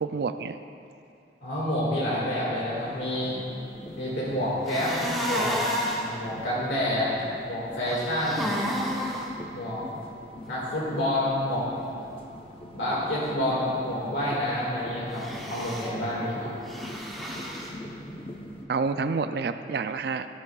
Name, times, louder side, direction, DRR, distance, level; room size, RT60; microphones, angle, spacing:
voice 1, 0.0-0.6 18.7-20.3, right 4 dB, 60° right, 10 dB, 0.4 m, -28 dB
voice 2, 1.4-3.3 4.0-5.5 5.9-7.1 7.4-8.7 9.5-9.8 10.5-11.7 12.7-16.5, left 1 dB, 85° left, -6 dB, 2.0 m, -28 dB
sound 1, 2.7-18.7, left 1 dB, 30° left, 0.8 m, -43 dB
sound 2, 4.7-6.1 7.9-9.3 15.1-15.9 16.7-17.7, equal, ahead, 1.1 m, -31 dB
13.5 x 12.5 x 2.4 m, 2.7 s
head